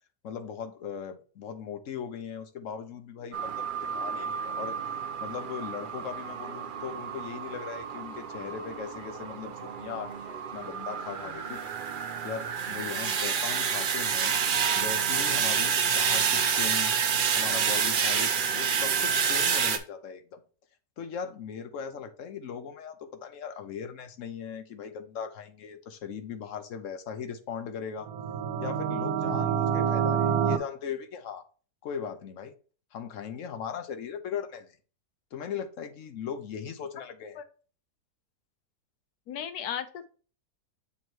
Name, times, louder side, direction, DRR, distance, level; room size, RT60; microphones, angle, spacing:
voice 1, 0.2-4.8 5.2-11.7 12.2-14.4 14.8-17.0 17.4-20.4 21.0-22.9 23.2-28.1 28.6-31.4 31.8-32.5 32.9-34.7 35.3-37.4, left 7 dB, 60° left, 9 dB, 1.0 m, -38 dB
sound 1, 3.3-19.8, right 7 dB, 65° right, 0.5 m, -29 dB
sound 2, 28.0-30.6, right 8 dB, 80° right, 1.1 m, -27 dB
voice 2, 39.3-40.1, left 9 dB, 80° left, 10 dB, 1.3 m, -35 dB
7.2 x 3.1 x 4.6 m, 0.38 s
omnidirectional pair, 1.6 m